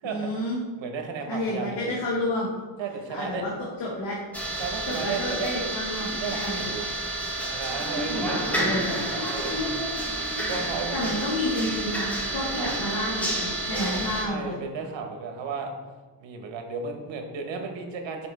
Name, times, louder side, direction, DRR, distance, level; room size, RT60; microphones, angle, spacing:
voice 1, 0.0-0.6 1.3-2.5 3.1-3.5 3.8-4.2 4.9-6.7 8.1-8.9 10.9-14.6, left 1 dB, 65° left, -6 dB, 1.8 m, -30 dB
voice 2, 0.8-1.9 2.8-3.5 4.6-5.7 6.2-6.9 7.4-10.2 10.5-11.2 12.5-12.7 13.7-15.7 16.2-18.3, right 4 dB, 75° right, 4 dB, 1.2 m, -34 dB
sound 1, 4.3-14.3, right 1 dB, 5° left, 1.5 m, -30 dB
5.8 x 5.3 x 4.1 m, 1.3 s
cardioid pair, 100°, 45 cm